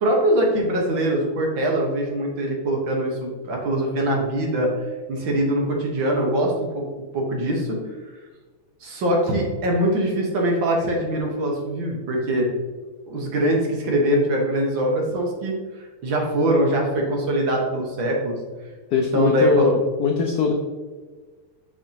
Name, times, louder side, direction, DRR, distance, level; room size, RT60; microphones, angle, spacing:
voice 1, 0.0-4.7 5.1-6.8 7.1-7.7 8.8-12.5 13.1-18.4 18.9-19.7, right 1 dB, 65° right, 0 dB, 1.9 m, -22 dB
voice 2, 18.9-20.5, left 5 dB, 80° left, 3 dB, 0.8 m, -21 dB
6.8 x 6.0 x 2.8 m, 1.4 s
omnidirectional pair, 2.4 m